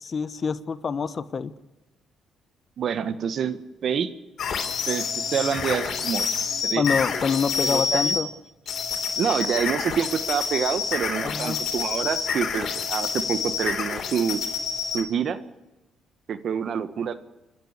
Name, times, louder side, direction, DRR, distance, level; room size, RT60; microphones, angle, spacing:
voice 1, 0.0-1.5 6.7-8.3 11.2-11.6, left 6 dB, 45° left, 14 dB, 1.1 m, -26 dB
voice 2, 2.8-4.1 4.9-6.3 6.6-6.8 7.6-8.2 9.2-14.4 14.9-15.4 16.3-17.2, right 7 dB, 60° right, 12 dB, 1.4 m, -27 dB
sound 1, 4.4-8.2 8.7-15.0, left 6 dB, 60° left, 3.9 m, -28 dB
28.0 x 12.0 x 8.3 m, 1.1 s
cardioid pair, 90°, 0 cm